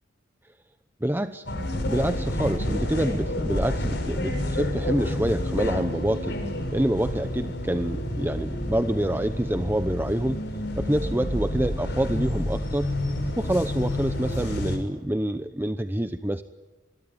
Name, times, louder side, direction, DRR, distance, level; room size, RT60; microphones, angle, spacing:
voice 1, 1.0-1.4 1.8-6.4 6.7-10.4 10.8-12.9 13.4-16.4, right 1 dB, 10° right, 10 dB, 0.8 m, -27 dB
sound 1, 1.5-14.8, left 1 dB, 65° left, 6.1 m, -29 dB
27.0 x 21.5 x 9.5 m, 1.3 s
head